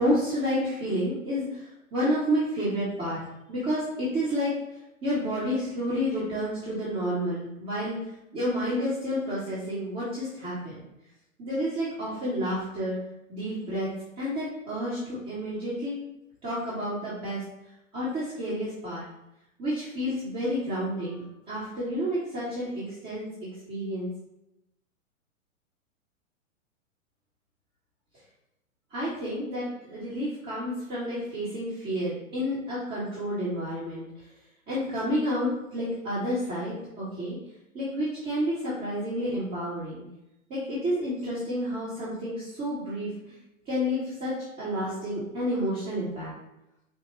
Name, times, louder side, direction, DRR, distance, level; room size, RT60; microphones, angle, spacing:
voice 1, 0.0-3.2 3.5-4.5 5.0-7.9 8.3-10.8 11.4-13.0 13.3-13.9 14.2-16.0 16.4-17.4 17.9-19.1 19.6-24.1 28.9-34.0 34.7-37.4 37.7-40.0 40.5-43.1 43.7-46.3, equal, 25° right, -10 dB, 1.5 m, -30 dB
6.1 x 2.4 x 3.1 m, 0.88 s
figure-of-eight pair, 110°, 41 cm